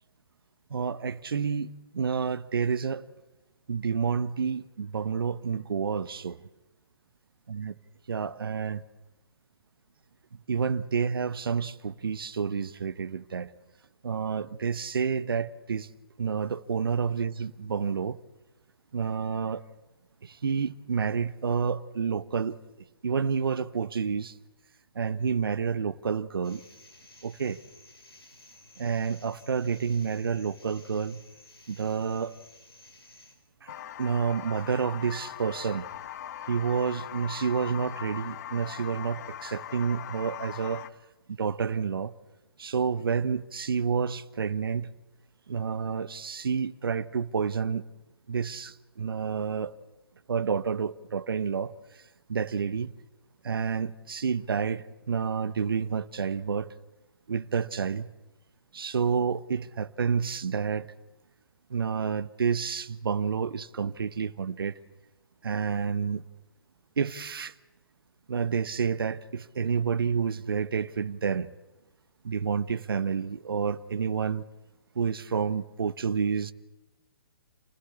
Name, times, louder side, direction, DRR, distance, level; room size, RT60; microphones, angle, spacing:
voice 1, 0.7-3.0 3.7-6.4 7.5-7.7 8.1-8.8 10.5-13.5 14.0-15.9 16.2-18.2 18.9-19.6 20.2-22.6 23.0-24.3 24.9-26.6 27.2-27.6 28.8-31.2 31.7-32.4 33.6-33.7 34.0-35.9 36.5-40.8 41.3-42.1 42.6-44.9 45.5-47.8 48.3-49.7 50.3-52.0 52.3-52.9 53.4-56.7 57.3-58.1 58.7-60.9 61.7-64.8 65.4-66.2 67.0-67.5 68.3-71.5 72.2-74.4 74.9-76.5, right 6 dB, 75° right, 1.1 m, -29 dB
sound 1, 26.4-33.4, left 2 dB, 85° left, 6.0 m, -55 dB
sound 2, 33.7-40.9, left 11 dB, 45° left, 1.0 m, -40 dB
28.5 x 19.0 x 8.3 m
figure-of-eight pair, 130°, 12 cm